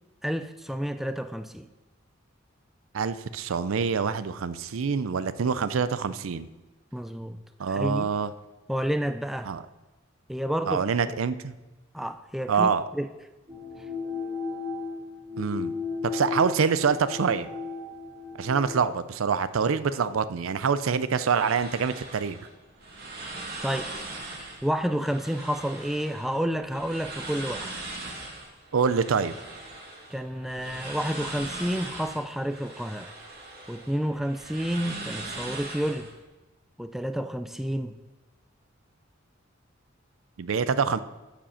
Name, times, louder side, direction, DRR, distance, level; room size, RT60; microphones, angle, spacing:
voice 1, 0.2-1.7 6.9-7.4 7.7-8.1 8.7-9.5 10.3-10.9 11.9-13.1 23.6-23.9 24.6-27.8 30.1-33.1 33.7-36.1 36.8-37.9, equal, ahead, 9 dB, 0.3 m, -30 dB
voice 2, 2.9-6.5 7.6-8.3 9.5-9.6 10.7-11.5 12.5-12.8 15.4-15.7 16.0-17.5 18.4-22.4 28.7-29.3 40.4-41.0, right 6 dB, 80° right, 14 dB, 0.5 m, -25 dB
sound 1, 13.5-18.8, left 5 dB, 20° right, 2.6 m, -35 dB
sound 2, 21.3-36.2, right 2 dB, 45° right, 1.9 m, -40 dB
14.0 x 5.1 x 5.7 m, 1.1 s
head